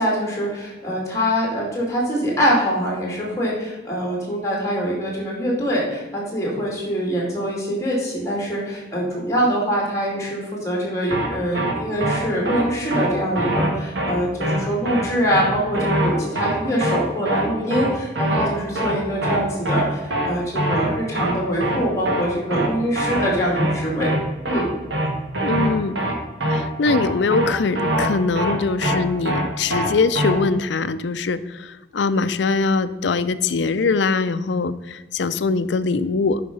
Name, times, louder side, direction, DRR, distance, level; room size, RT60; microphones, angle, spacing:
voice 1, 0.0-24.1 24.5-24.7, equal, 15° left, -3 dB, 2.6 m, -24 dB
sound 1, 11.1-11.3 11.5-11.7 12.0-12.2 12.5-12.6 12.9-13.1 13.4-13.7 14.0-14.1 14.4-14.6 14.9-15.0 15.3-15.5 15.7-16.1 16.4-16.5 16.8-17.0 17.3-17.4 17.7-17.9 18.2-18.5 18.8-18.9 19.2-19.4 19.7-19.8 20.1-20.3 20.6-20.9 21.1-21.3 21.6-21.8 22.1-22.2 22.5-22.7 23.0-23.3 23.6-23.7 24.0-24.2 24.5-24.6 24.9-25.1 25.3-25.7 26.0-26.1 26.4-26.6 26.9-27.0 27.3-27.5 27.8-28.1 28.4-28.5 28.8-29.0 29.3-29.4 29.7-29.9 30.2-30.3, right 1 dB, 80° right, 1.8 m, -22 dB
voice 2, 25.4-26.0 26.5-36.4, left 4 dB, 80° left, 14 dB, 0.5 m, -22 dB
8.6 x 5.8 x 5.4 m, 1.2 s
head